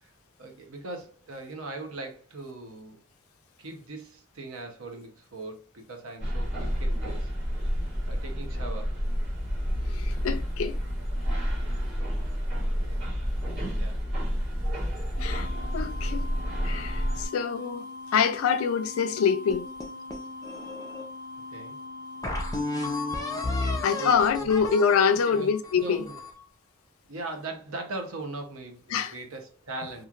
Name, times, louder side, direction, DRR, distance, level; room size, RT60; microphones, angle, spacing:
voice 1, 0.4-3.0 3.6-7.3 8.1-9.0 11.7-11.9 12.6-13.1 13.8-14.0 21.5-21.8 23.6-24.7 25.1-26.2 27.1-30.1, right 2 dB, 80° right, 0.8 m, -40 dB
sound 1, 6.2-17.3, equal, 55° right, 1.5 m, -29 dB
voice 2, 9.9-10.8 15.2-15.5 15.7-16.3 16.6-17.8 18.1-19.7 23.6-26.0 28.9-29.1, left 6 dB, 80° left, 0.3 m, -25 dB
sound 2, 15.2-24.2, left 2 dB, 35° right, 0.5 m, -41 dB
sound 3, 19.5-21.0 21.6-21.7 22.2-26.4, left 2 dB, 15° left, 0.5 m, -33 dB
3.0 x 2.4 x 2.4 m
head